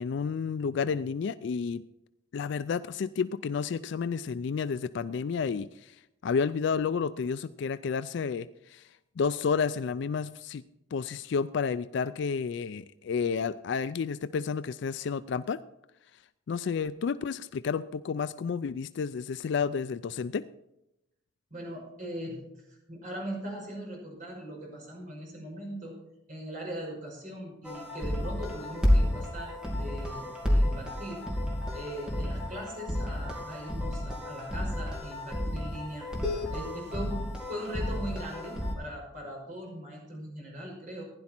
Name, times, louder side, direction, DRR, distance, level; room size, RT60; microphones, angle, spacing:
voice 1, 0.0-1.8 2.3-8.9 9.2-10.6 10.9-15.6 16.5-20.4, left 6 dB, 60° left, 14 dB, 0.3 m, -31 dB
voice 2, 21.5-22.4 22.7-25.9 26.3-31.2 31.7-36.1 36.5-37.2 37.5-41.0, right 1 dB, 40° right, -1 dB, 5.5 m, -40 dB
sound 1, 27.6-38.7, left 1 dB, 5° right, 2.6 m, -31 dB
16.0 x 10.5 x 4.4 m, 0.88 s
head